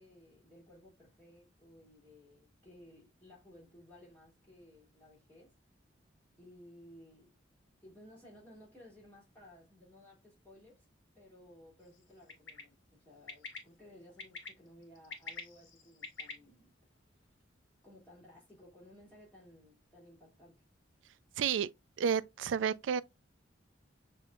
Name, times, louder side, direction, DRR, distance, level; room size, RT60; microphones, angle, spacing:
voice 1, 0.0-5.5 6.4-7.4 7.8-10.8 11.1-16.7 17.8-20.7, left 1 dB, 10° left, 2.3 m, -58 dB
Bird, 12.3-12.6 13.3-13.6 14.2-14.5 15.0-16.3, left 5 dB, 85° left, 1.2 m, -43 dB
voice 2, 21.4-21.7 22.0-23.0, right 7 dB, 80° right, 0.3 m, -31 dB
6.7 x 2.7 x 2.3 m
head